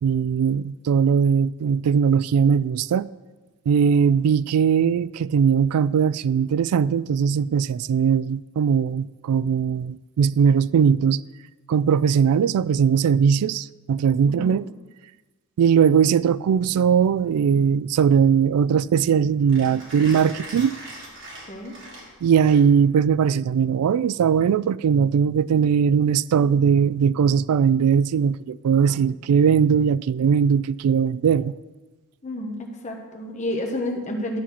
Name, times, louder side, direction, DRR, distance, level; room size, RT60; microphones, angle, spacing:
voice 1, 0.0-3.1 3.7-11.2 11.7-14.6 15.6-20.8 22.2-31.5, right 7 dB, 90° right, 0.3 m, -20 dB
voice 2, 14.3-14.6 21.5-21.7 32.2-34.4, left 1 dB, 30° left, 1.1 m, -30 dB
Mechanisms, 16.9-23.0, right 1 dB, 55° right, 3.6 m, -42 dB
12.0 x 4.2 x 7.4 m
head